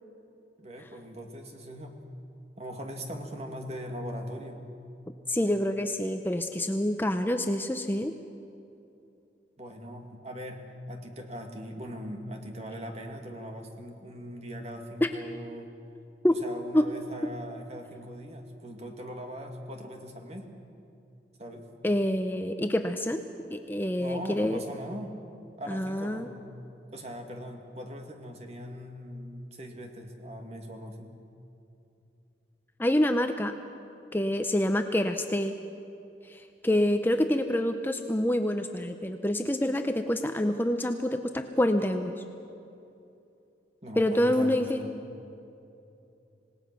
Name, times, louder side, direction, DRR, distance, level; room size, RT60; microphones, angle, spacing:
voice 1, 0.6-2.0 2.6-4.6 9.6-10.6 10.9-15.7 16.3-20.5 21.4-21.7 24.0-25.2 25.6-26.3 26.9-31.1 43.8-44.9, equal, 35° right, 3 dB, 2.2 m, -40 dB
voice 2, 5.3-8.1 15.0-15.1 16.2-16.4 16.7-16.9 21.8-23.2 23.5-24.6 25.7-26.3 32.8-33.5 34.1-35.6 36.2-42.1 44.0-44.8, left 1 dB, 10° left, 6 dB, 0.6 m, -27 dB
26.5 x 18.5 x 6.1 m, 2.7 s
head